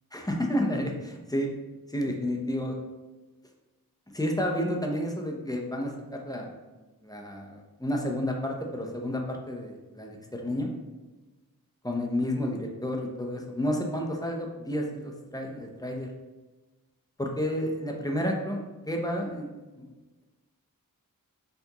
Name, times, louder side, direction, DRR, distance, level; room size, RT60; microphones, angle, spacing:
voice 1, 0.1-1.5 1.9-2.8 4.1-6.5 7.0-10.7 11.8-16.1 17.2-18.6 18.9-19.5 19.7-19.9, equal, 10° left, 1 dB, 0.6 m, -31 dB
4.5 x 2.5 x 2.9 m, 1.2 s
cardioid pair, 50°, 35 cm